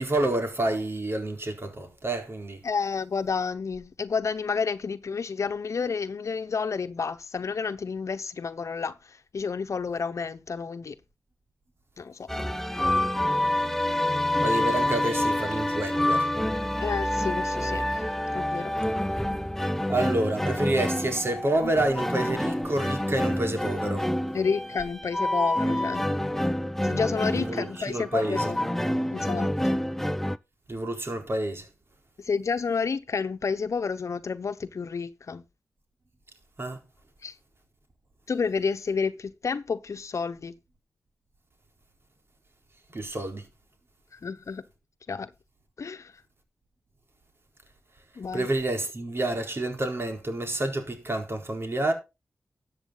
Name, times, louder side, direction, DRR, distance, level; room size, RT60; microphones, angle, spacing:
voice 1, 0.0-2.6 14.4-16.3 19.9-24.1 27.3-28.5 30.7-31.7 36.6-36.8 42.9-43.5 48.3-51.9, right 1 dB, 50° right, 4.2 m, -28 dB
voice 2, 2.6-10.9 12.0-12.3 16.8-17.9 18.3-18.7 21.6-21.7 24.3-26.1 26.8-28.6 29.1-29.8 32.2-35.4 37.2-37.3 38.3-40.6 44.1-44.6 45.1-45.3 45.8-46.1 48.2-48.5, left 5 dB, 75° left, 1.0 m, -30 dB
sound 1, 12.3-30.4, left 1 dB, 5° left, 0.8 m, -27 dB
13.5 x 8.4 x 4.0 m
cardioid pair, 50°, 5 cm